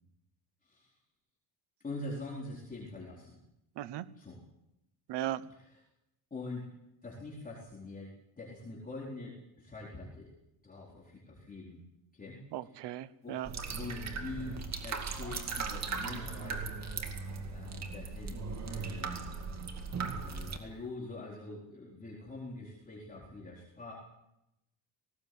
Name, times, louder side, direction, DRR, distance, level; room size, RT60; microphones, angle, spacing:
voice 1, 0.6-0.9 1.8-3.4 4.2-4.4 5.5-5.8 6.3-6.7 7.0-10.3 10.6-11.8 12.1-12.7 13.2-13.4 13.8-16.7 17.5-19.3 20.2-23.9, left 2 dB, 20° left, -4 dB, 4.2 m, -44 dB
voice 2, 3.8-4.1 5.1-5.5 12.5-13.5, right 12 dB, 60° right, 15 dB, 1.1 m, -37 dB
sound 1, 13.4-20.6, right 4 dB, 35° right, 2.3 m, -38 dB
19.0 x 18.0 x 7.9 m, 0.85 s
cardioid pair, 145°, 46 cm